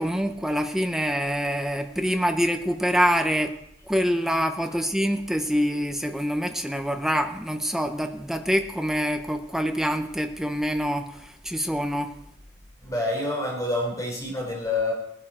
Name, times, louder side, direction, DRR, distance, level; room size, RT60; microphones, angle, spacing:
voice 1, 0.0-3.6 3.9-12.1, equal, ahead, 6 dB, 1.0 m, -25 dB
voice 2, 12.8-14.9, left 2 dB, 20° left, -1 dB, 4.0 m, -28 dB
19.0 x 11.5 x 4.4 m, 0.76 s
head